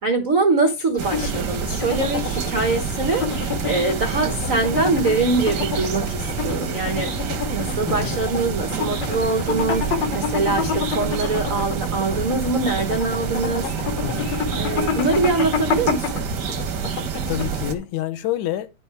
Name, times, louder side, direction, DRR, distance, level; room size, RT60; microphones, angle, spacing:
voice 1, 0.0-3.3 3.6-13.7 14.5-16.3, right 3 dB, 85° right, 0.7 m, -23 dB
sound 1, 0.9-17.8, left 6 dB, 65° left, 2.6 m, -28 dB
sound 2, 1.0-17.8, right 6 dB, 65° right, 1.1 m, -28 dB
voice 2, 7.9-8.2 14.0-14.4 17.3-18.7, left 13 dB, 80° left, 2.2 m, -28 dB
10.0 x 6.1 x 3.4 m
omnidirectional pair, 3.4 m